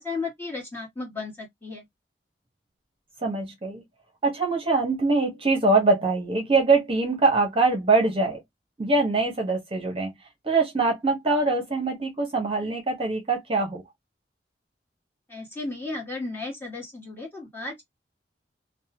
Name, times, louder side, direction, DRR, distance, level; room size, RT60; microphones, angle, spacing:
voice 1, 0.0-1.8 15.3-17.8, left 3 dB, 10° left, 1.5 m, -34 dB
voice 2, 3.2-3.8 4.2-8.4 8.8-10.1 10.4-13.8, right 3 dB, 30° right, 0.9 m, -23 dB
2.6 x 2.1 x 2.8 m
head